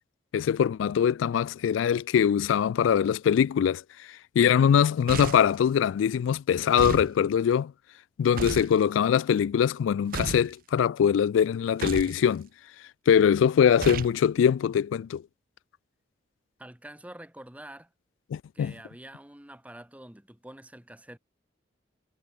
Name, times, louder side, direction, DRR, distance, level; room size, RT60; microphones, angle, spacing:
voice 1, 0.3-3.8 4.4-7.7 8.2-12.5 13.1-15.2 18.3-18.7, left 8 dB, 85° left, 0.3 m, -22 dB
sound 1, 5.1-5.6 6.8-7.1 8.4-8.7 10.1-10.5 11.8-12.2 13.8-14.2, right 4 dB, 50° right, 0.5 m, -33 dB
voice 2, 16.6-17.9 18.5-21.2, right 1 dB, 10° right, 1.2 m, -46 dB
head